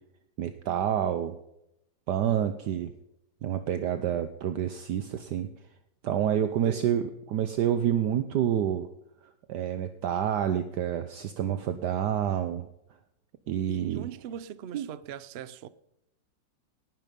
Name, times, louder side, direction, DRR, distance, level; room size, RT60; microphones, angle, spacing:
voice 1, 0.4-1.3 2.1-2.9 3.4-5.5 6.0-8.9 9.5-12.7 13.5-14.1 14.7-14.8, right 10 dB, 70° right, 1.3 m, -28 dB
voice 2, 13.7-15.7, right 9 dB, 90° right, 0.5 m, -40 dB
18.5 x 11.5 x 5.3 m
omnidirectional pair, 2.0 m